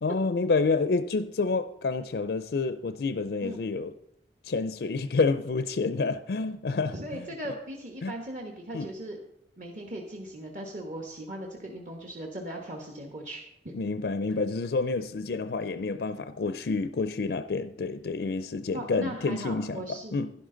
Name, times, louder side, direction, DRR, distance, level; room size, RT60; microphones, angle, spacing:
voice 1, 0.0-3.9 4.4-7.3 8.0-8.1 8.7-8.9 13.7-20.3, left 4 dB, 65° left, 0.4 m, -29 dB
voice 2, 6.9-9.2 9.6-13.8 18.7-20.2, right 1 dB, 45° right, 1.3 m, -38 dB
11.5 x 11.0 x 3.9 m
head